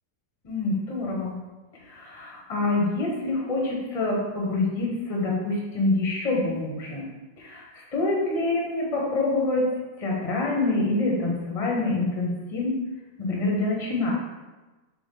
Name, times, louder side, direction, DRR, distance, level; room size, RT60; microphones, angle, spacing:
voice 1, 0.4-1.3 1.8-7.0 7.4-9.7 10.0-12.8 13.2-14.1, left 2 dB, 25° left, -3 dB, 1.1 m, -26 dB
7.0 x 3.5 x 3.9 m, 1.2 s
omnidirectional pair, 1.9 m